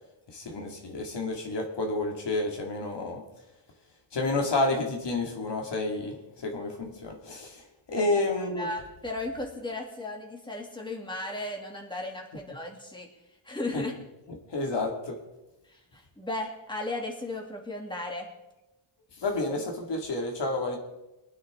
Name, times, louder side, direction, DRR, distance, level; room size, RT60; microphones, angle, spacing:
voice 1, 0.3-3.2 4.1-8.7 13.7-13.8 14.5-15.2 19.1-20.8, left 2 dB, 55° left, 1 dB, 2.4 m, -30 dB
voice 2, 8.6-13.1 13.4-13.9 15.7-18.3, left 2 dB, 10° left, 0 dB, 2.5 m, -35 dB
25.0 x 9.4 x 3.7 m, 1.0 s
cardioid pair, 105°, 50 cm